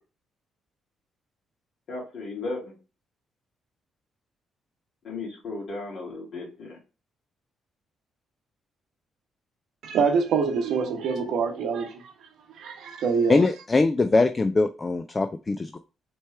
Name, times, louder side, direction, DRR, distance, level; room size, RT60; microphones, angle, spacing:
voice 1, 1.9-2.7 5.0-6.8, left 3 dB, 60° left, 2.4 m, -35 dB
voice 2, 9.8-12.1 12.6-13.4, right 5 dB, 75° right, 1.0 m, -25 dB
voice 3, 13.3-15.8, left 3 dB, 25° left, 0.3 m, -22 dB
4.3 x 3.2 x 3.3 m
cardioid pair, 90°, 0 cm